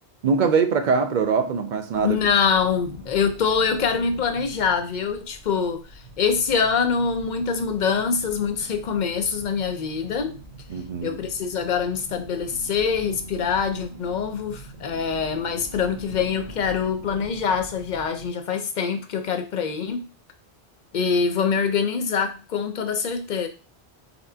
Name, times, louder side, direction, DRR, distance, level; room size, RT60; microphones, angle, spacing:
voice 1, 0.2-2.2 10.7-11.2, right 5 dB, 60° right, 0.5 m, -22 dB
sound 1, 1.9-18.3, right 1 dB, 40° right, 2.1 m, -43 dB
voice 2, 2.0-5.8 6.2-10.4 11.0-20.0 20.9-23.5, left 6 dB, 55° left, 0.6 m, -24 dB
4.2 x 3.2 x 2.7 m
omnidirectional pair, 1.1 m